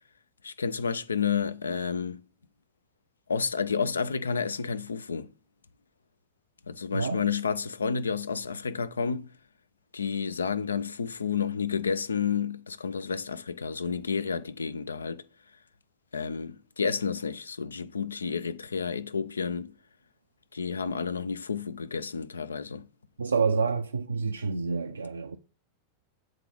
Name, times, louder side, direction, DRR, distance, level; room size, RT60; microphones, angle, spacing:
voice 1, 0.4-2.2 3.3-5.3 6.7-9.3 9.9-15.2 16.1-19.7 20.5-22.9, left 6 dB, 75° left, 0.3 m, -30 dB
voice 2, 23.2-25.4, right 5 dB, 75° right, 0.3 m, -28 dB
7.5 x 3.7 x 3.4 m
figure-of-eight pair, 90°, 0 cm